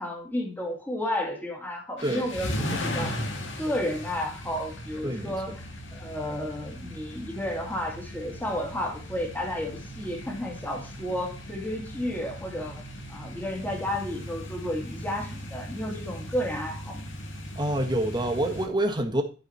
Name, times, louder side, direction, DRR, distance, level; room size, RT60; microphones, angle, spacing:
voice 1, 0.0-3.2 3.6-5.6 5.9-12.8 13.1-17.0, left 1 dB, 10° left, 2.0 m, -32 dB
sound 1, 2.0-18.7, equal, 90° left, 1.8 m, -38 dB
voice 2, 5.0-5.6 17.5-19.2, right 1 dB, 25° right, 1.4 m, -27 dB
12.0 x 5.1 x 4.2 m
head